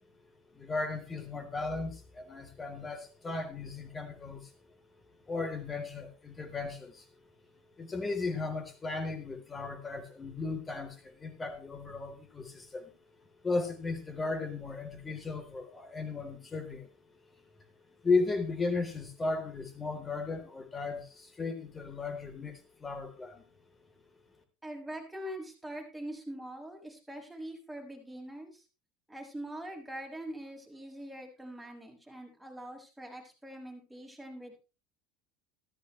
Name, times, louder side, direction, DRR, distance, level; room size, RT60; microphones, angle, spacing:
voice 1, 0.5-4.5 5.3-7.1 7.8-13.0 13.4-16.9 18.0-23.4, left 3 dB, 20° left, 7 dB, 3.8 m, -35 dB
voice 2, 24.6-28.6 29.1-34.6, right 1 dB, 5° right, 0 dB, 6.5 m, -43 dB
14.5 x 13.5 x 3.3 m, 0.32 s
hypercardioid pair, 85°, 0 cm